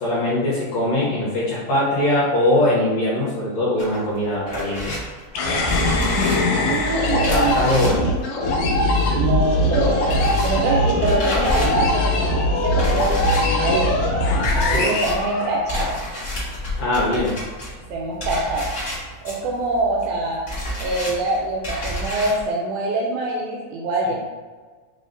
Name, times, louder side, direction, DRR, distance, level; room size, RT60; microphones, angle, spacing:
voice 1, 0.0-4.9 7.0-8.1 14.6-14.9 16.8-17.3 24.1-24.2, left 1 dB, 70° left, -7 dB, 1.6 m, -21 dB
sound 1, 3.8-9.3 9.6-22.4, left 1 dB, 50° left, 0.8 m, -29 dB
sound 2, 5.4-16.0, left 1 dB, 90° left, 2.2 m, -21 dB
voice 2, 6.4-8.1 9.2-13.9 14.5-15.9 17.9-18.8 19.2-20.4 20.8-24.1, right 2 dB, 80° right, -2 dB, 1.7 m, -24 dB
5.2 x 2.0 x 3.8 m, 1.4 s
omnidirectional pair, 3.8 m